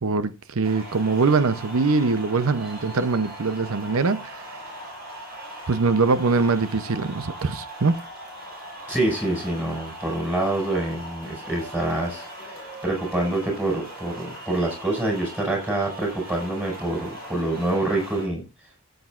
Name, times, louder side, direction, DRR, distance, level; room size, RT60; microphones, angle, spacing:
voice 1, 0.0-4.8 5.7-8.0, right 4 dB, 75° right, 0.7 m, -23 dB
sound 1, 0.6-18.3, right 1 dB, 45° right, 7.8 m, -39 dB
voice 2, 8.9-18.4, right 2 dB, 10° right, 5.1 m, -26 dB
17.0 x 8.0 x 2.5 m
head